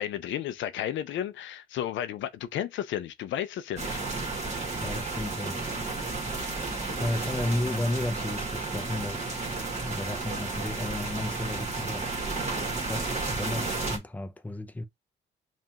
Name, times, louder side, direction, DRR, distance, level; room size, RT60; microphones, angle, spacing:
voice 1, 0.0-4.0, left 11 dB, 75° left, 0.5 m, -33 dB
sound 1, 3.8-14.0, right 3 dB, 35° right, 1.6 m, -32 dB
voice 2, 4.8-5.6 7.0-12.1 12.9-14.9, left 1 dB, 10° left, 0.5 m, -33 dB
5.3 x 2.4 x 2.9 m
cardioid pair, 90°, 20 cm